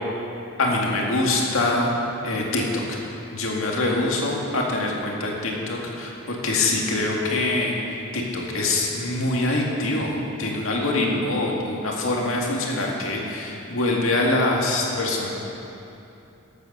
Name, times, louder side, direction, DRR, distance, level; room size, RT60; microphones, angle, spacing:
voice 1, 0.6-1.9 2.2-3.0 3.3-15.3, left 2 dB, 75° left, -1 dB, 2.0 m, -24 dB
12.5 x 8.4 x 6.7 m, 2.9 s
head